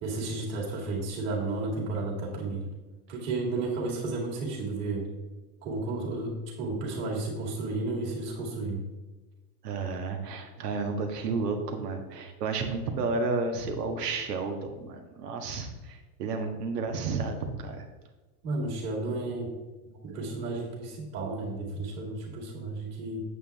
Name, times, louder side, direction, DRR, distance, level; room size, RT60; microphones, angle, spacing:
voice 1, 0.0-2.7 3.1-5.0 5.6-6.3 6.6-8.8 18.4-19.5 20.0-23.2, right 3 dB, 35° right, -3 dB, 2.3 m, -32 dB
voice 2, 9.6-17.8, right 4 dB, 85° right, 5 dB, 1.7 m, -32 dB
8.4 x 7.4 x 3.5 m, 1.2 s
supercardioid pair, 150°, 47 cm